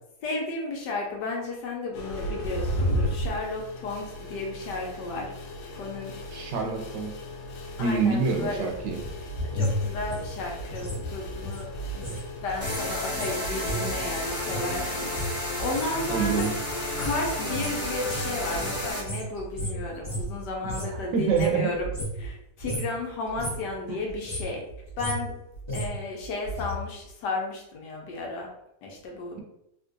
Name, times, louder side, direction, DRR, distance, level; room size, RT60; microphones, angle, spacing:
voice 1, 0.2-5.3 5.7-6.2 7.8-8.7 9.5-12.1 12.4-16.5 17.0-21.9 22.2-24.6 25.0-25.4 25.7-28.5 28.8-29.4, left 2 dB, 70° left, 0 dB, 1.2 m, -33 dB
sound 1, 1.9-18.9, equal, 90° left, 1.4 m, -36 dB
voice 2, 6.3-7.1 7.8-9.0 16.1-16.5 20.8-21.7 23.9-24.0, right 5 dB, 75° right, 1 dB, 1.2 m, -26 dB
sound 2, 8.8-12.2 12.5-21.0 21.3-22.3 22.6-23.0 23.3-23.7 24.1-26.7 27.0-27.1, equal, 20° left, 0.7 m, -34 dB
sound 3, 12.6-19.0, left 1 dB, 15° right, 0.5 m, -32 dB
3.7 x 2.5 x 2.5 m, 0.80 s
omnidirectional pair, 2.1 m